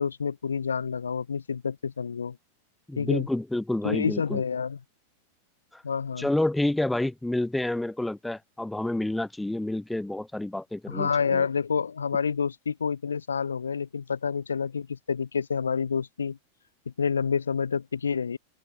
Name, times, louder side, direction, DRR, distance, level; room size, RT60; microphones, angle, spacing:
voice 1, 0.0-2.4 3.0-3.3 3.8-4.8 5.8-6.3 10.9-16.4 16.9-18.4, left 6 dB, 70° left, 2.1 m, -28 dB
voice 2, 2.9-4.4 5.7-5.8 6.2-11.4, left 1 dB, 5° left, 1.4 m, -29 dB
open air
figure-of-eight pair, 90°, 0 cm